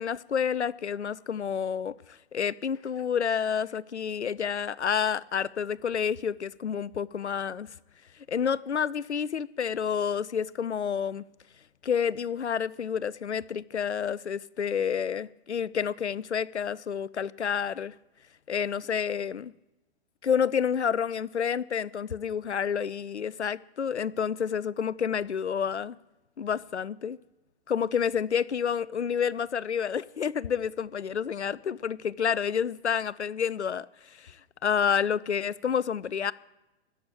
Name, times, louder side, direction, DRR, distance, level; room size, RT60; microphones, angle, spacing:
voice 1, 0.0-7.7 8.3-11.2 11.8-17.9 18.5-19.5 20.2-26.0 26.4-27.2 27.7-34.4 34.6-36.3, left 7 dB, 90° left, 0.5 m, -29 dB
13.0 x 7.9 x 8.8 m
figure-of-eight pair, 110°, 33 cm